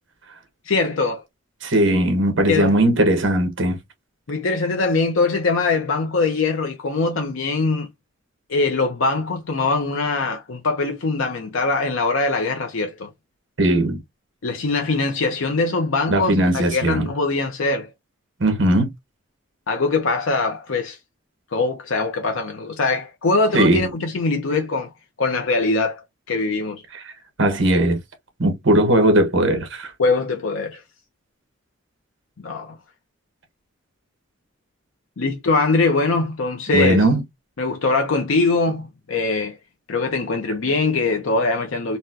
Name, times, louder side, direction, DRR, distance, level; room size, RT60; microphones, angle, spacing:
voice 1, 0.6-1.2 2.5-2.7 4.3-7.9 8.5-13.1 14.4-17.9 19.7-21.0 21.5-24.9 25.2-26.0 26.3-26.8 30.0-30.8 32.4-32.8 35.2-37.0 37.6-39.6 39.9-42.0, left 3 dB, 75° left, 0.6 m, -22 dB
voice 2, 1.6-3.8 13.6-14.0 16.1-17.1 18.4-18.9 23.5-23.9 26.9-27.1 27.4-28.0 28.4-29.9 36.7-37.2, right 1 dB, 65° right, 1.2 m, -18 dB
4.1 x 2.2 x 2.5 m
head